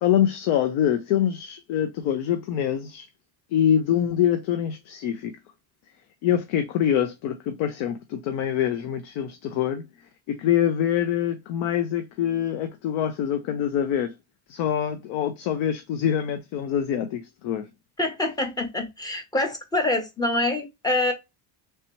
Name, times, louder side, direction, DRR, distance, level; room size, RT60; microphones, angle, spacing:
voice 1, 0.0-3.1 3.5-5.3 6.2-9.8 10.3-14.1 14.5-17.7, left 10 dB, 80° left, 0.7 m, -25 dB
voice 2, 18.0-21.1, left 2 dB, 10° left, 0.6 m, -25 dB
3.3 x 2.8 x 2.9 m
cardioid pair, 160°, 48 cm